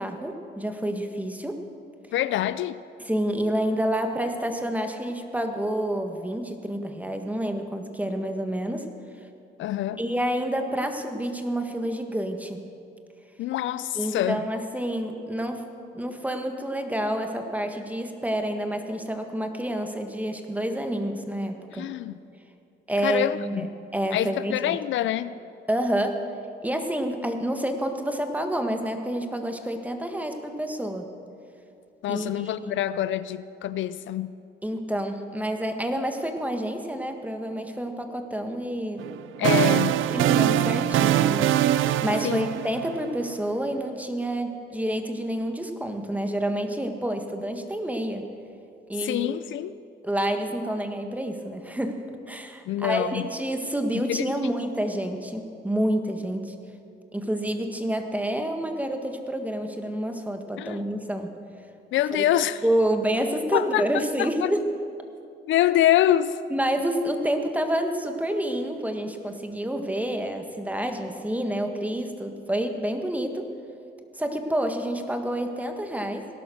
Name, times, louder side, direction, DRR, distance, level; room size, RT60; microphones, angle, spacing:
voice 1, 0.0-1.6 3.0-8.9 10.0-12.6 14.0-15.7 15.9-21.9 22.9-24.8 25.7-26.3 26.6-31.1 32.1-32.7 34.6-39.1 39.4-39.7 40.1-48.3 48.9-49.3 50.0-56.6 57.1-61.3 62.1-62.3 62.6-64.6 66.5-73.5 74.2-76.3, right 1 dB, 5° right, 5 dB, 1.6 m, -28 dB
voice 2, 2.1-2.8 9.6-10.0 13.4-14.4 21.7-22.2 23.0-23.4 24.1-25.3 32.0-34.3 39.4-40.0 42.2-42.5 49.0-49.7 52.7-53.3 54.1-54.2 60.6-60.8 61.9-62.6 63.5-63.8 64.2-64.3 65.5-66.3, left 12 dB, 75° left, 15 dB, 0.5 m, -25 dB
sound 1, 39.0-43.2, right 12 dB, 80° right, 0.5 m, -22 dB
18.0 x 11.5 x 6.4 m, 2.5 s
cardioid pair, 90°, 20 cm